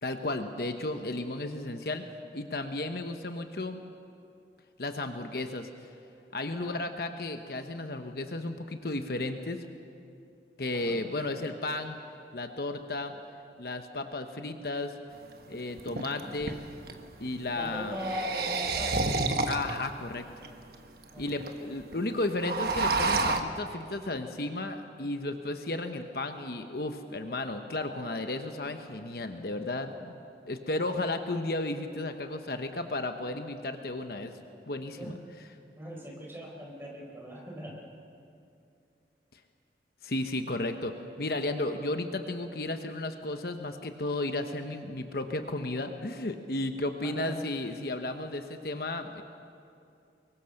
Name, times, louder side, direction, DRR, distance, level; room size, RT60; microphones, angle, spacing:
voice 1, 0.0-2.0 2.3-3.8 4.8-5.7 6.3-9.7 10.6-12.0 12.3-13.1 13.6-14.9 15.5-16.7 17.2-18.0 19.5-20.3 21.2-30.1 30.5-34.3 34.7-35.1 40.0-49.2, left 2 dB, 55° left, 6 dB, 1.1 m, -34 dB
sound 1, 15.1-15.2 15.8-17.0 17.8-19.9 20.4-20.5 20.7-20.8 21.0-21.5 21.8-21.9 22.2-23.4, right 3 dB, 55° right, 1.2 m, -29 dB
voice 2, 17.5-19.1 21.1-21.5 35.0-35.2 35.8-37.8 47.0-47.3, equal, 15° right, -1 dB, 4.3 m, -40 dB
24.5 x 22.5 x 6.6 m, 2.5 s
head